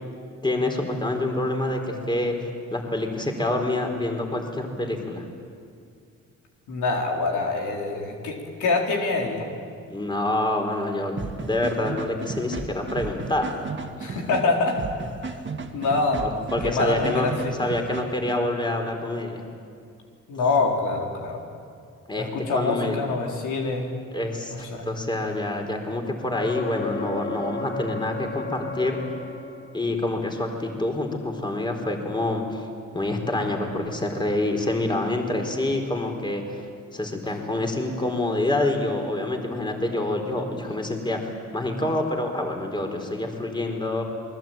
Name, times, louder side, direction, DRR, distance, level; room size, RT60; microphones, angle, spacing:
voice 1, 0.4-5.2 9.9-13.6 16.5-17.3 17.6-19.4 22.1-23.0 24.1-29.0 29.7-32.6 32.9-44.0, left 2 dB, 15° left, 3 dB, 4.4 m, -27 dB
voice 2, 6.7-9.5 14.0-14.8 15.2-15.4 15.7-17.5 20.3-21.4 22.2-23.9 24.5-24.9, left 3 dB, 75° left, 1 dB, 4.3 m, -25 dB
sound 1, 11.2-18.4, right 4 dB, 40° right, 2.3 m, -34 dB
sound 2, 26.3-30.1 33.7-33.8, left 4 dB, 45° left, 3.1 m, -34 dB
27.5 x 21.0 x 9.1 m, 2.3 s
cardioid pair, 90°, 30 cm